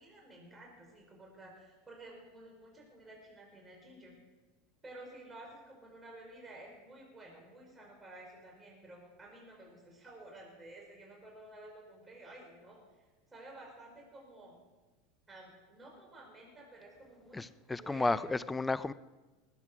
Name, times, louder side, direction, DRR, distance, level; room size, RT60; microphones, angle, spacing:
voice 1, 0.0-4.1 4.8-12.8 13.3-14.6 15.3-17.4 17.8-18.1, right 1 dB, 20° right, -1 dB, 5.3 m, -52 dB
voice 2, 17.3-18.9, left 3 dB, 10° left, 16 dB, 0.6 m, -32 dB
20.5 x 9.8 x 6.4 m, 1.2 s
hypercardioid pair, 90°, 0 cm